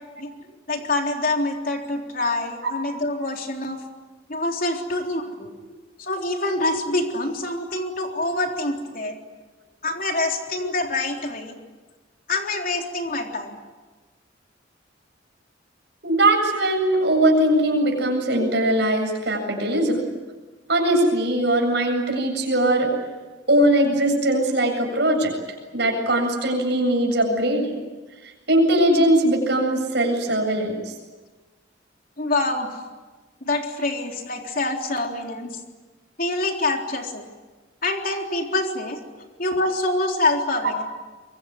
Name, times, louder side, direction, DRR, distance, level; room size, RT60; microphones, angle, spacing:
voice 1, 0.7-3.8 4.3-5.5 6.0-9.2 9.8-11.6 12.3-13.6 32.2-32.7 33.5-35.6 36.2-37.3 37.8-39.0 39.4-40.9, left 2 dB, 45° left, 2 dB, 3.7 m, -26 dB
voice 2, 16.0-20.0 20.7-22.9 23.5-25.3 25.7-27.8 28.5-31.0, right 1 dB, 60° right, 2 dB, 7.7 m, -20 dB
25.0 x 23.0 x 9.8 m, 1.2 s
head